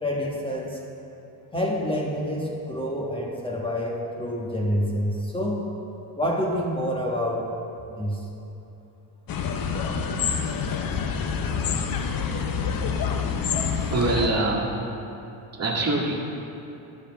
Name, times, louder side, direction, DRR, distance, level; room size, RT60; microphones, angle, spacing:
voice 1, 0.0-0.8 1.5-5.7 6.2-7.5 7.9-8.2, equal, 10° left, -3 dB, 1.3 m, -27 dB
sound 1, 9.3-14.3, left 6 dB, 50° left, 0.8 m, -27 dB
voice 2, 13.9-14.8 15.5-16.1, right 2 dB, 35° right, -3 dB, 1.9 m, -24 dB
10.0 x 5.2 x 6.2 m, 2.9 s
supercardioid pair, 85°, 46 cm